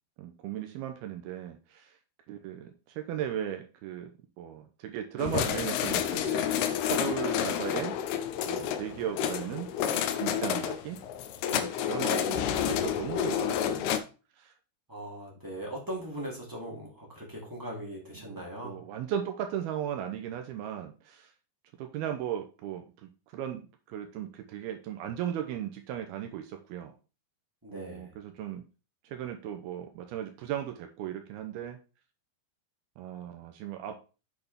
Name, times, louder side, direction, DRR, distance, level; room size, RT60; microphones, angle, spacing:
voice 1, 0.2-2.0 2.3-4.1 4.4-8.0 8.5-11.0 11.5-14.0 14.4-14.5 18.3-21.3 21.8-23.6 23.9-26.9 27.7-28.6 29.0-31.8 33.0-34.0, right 10 dB, 80° right, 6 dB, 2.4 m, -37 dB
sound 1, 5.2-14.0, left 9 dB, 75° left, 2.6 m, -30 dB
voice 2, 14.9-18.8 27.6-28.1, right 1 dB, 5° right, -4 dB, 2.5 m, -40 dB
8.1 x 6.9 x 3.6 m, 0.33 s
omnidirectional pair, 5.0 m